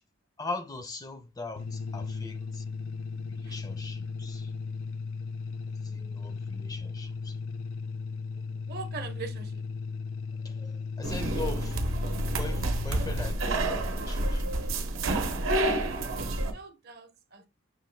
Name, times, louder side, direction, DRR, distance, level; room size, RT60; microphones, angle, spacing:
voice 1, 0.4-2.6 3.3-4.5 5.8-7.4 10.4-11.8 12.3-14.5, left 3 dB, 20° left, 0.4 m, -40 dB
sound 1, 1.6-13.3, left 4 dB, 85° left, 0.5 m, -36 dB
voice 2, 8.4-9.5 15.6-17.5, right 5 dB, 50° right, 0.7 m, -43 dB
sound 2, 11.0-16.5, right 2 dB, 85° right, 0.7 m, -29 dB
6.1 x 2.4 x 3.1 m
head